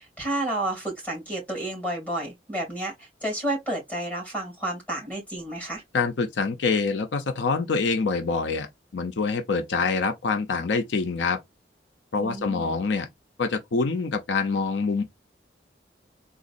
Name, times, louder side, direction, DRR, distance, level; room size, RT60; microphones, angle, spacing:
voice 1, 0.0-5.8 12.2-12.8, right 1 dB, 10° left, 2.4 m, -31 dB
voice 2, 5.9-8.7 8.9-11.4 12.1-13.1 13.4-15.0, left 4 dB, 85° left, 0.6 m, -25 dB
3.9 x 2.4 x 2.5 m
head